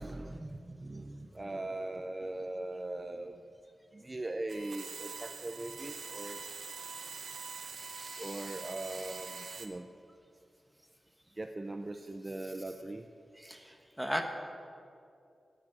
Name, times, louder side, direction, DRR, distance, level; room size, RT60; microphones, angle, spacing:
voice 1, 0.0-3.4 3.9-6.4 8.2-9.9 11.4-13.0, right 2 dB, 25° right, 7 dB, 0.4 m, -40 dB
sound 1, 4.5-9.7, right 5 dB, 75° right, 0.8 m, -44 dB
voice 2, 7.7-9.6 13.4-14.3, equal, ahead, 4 dB, 1.1 m, -41 dB
12.0 x 6.2 x 9.1 m, 2.5 s
wide cardioid pair, 130°, 0 cm